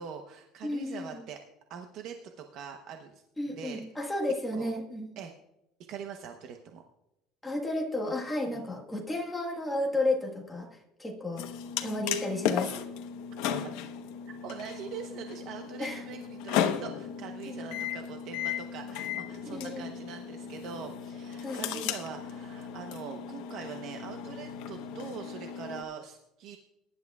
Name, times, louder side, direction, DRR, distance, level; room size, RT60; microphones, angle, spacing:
voice 1, 0.0-1.4 1.7-3.8 4.5-4.7 5.2-5.3 5.9-6.8 8.5-8.6 13.6-13.7 14.3-26.6, right 7 dB, 45° right, 4 dB, 0.9 m, -43 dB
voice 2, 0.6-1.2 3.4-5.1 7.4-11.5 11.8-12.7 15.8-16.0 17.5-17.8 19.5-20.0 21.4-21.9, left 1 dB, 5° left, 0 dB, 1.5 m, -33 dB
sound 1, 11.4-25.8, left 9 dB, 70° left, 1.0 m, -36 dB
22.0 x 11.0 x 2.4 m, 0.89 s
cardioid pair, 170°, 0 cm